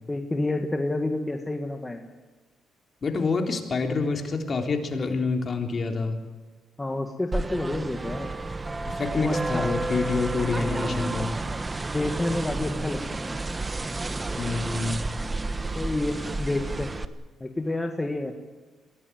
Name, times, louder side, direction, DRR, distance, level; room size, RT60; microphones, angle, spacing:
voice 1, 0.1-2.1 6.8-8.3 9.2-9.8 10.6-11.2 11.9-13.4 15.7-16.9 17.4-18.3, left 2 dB, 15° left, 4 dB, 1.9 m, -29 dB
voice 2, 3.0-6.2 8.8-11.3 14.4-15.0, left 4 dB, 40° left, 4 dB, 3.5 m, -27 dB
sound 1, 7.3-17.0, right 2 dB, 25° right, 1.2 m, -31 dB
22.5 x 17.0 x 9.2 m, 1.3 s
cardioid pair, 90°, 0 cm